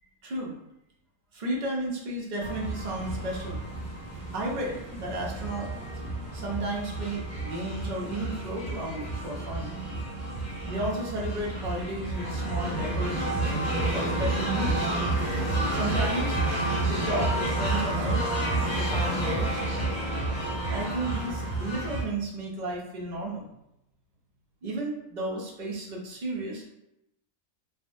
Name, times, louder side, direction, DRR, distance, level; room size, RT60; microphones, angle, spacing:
voice 1, 0.2-0.5 1.3-3.6 4.3-5.7 6.3-9.7 10.7-13.5 13.9-14.9 15.7-16.4 16.8-18.2 18.6-19.6 20.7-23.4 24.6-26.7, right 1 dB, 65° right, -3 dB, 0.4 m, -33 dB
sound 1, 2.4-22.0, right 2 dB, 75° left, 1.4 m, -30 dB
3.3 x 2.1 x 2.5 m, 0.84 s
omnidirectional pair, 1.5 m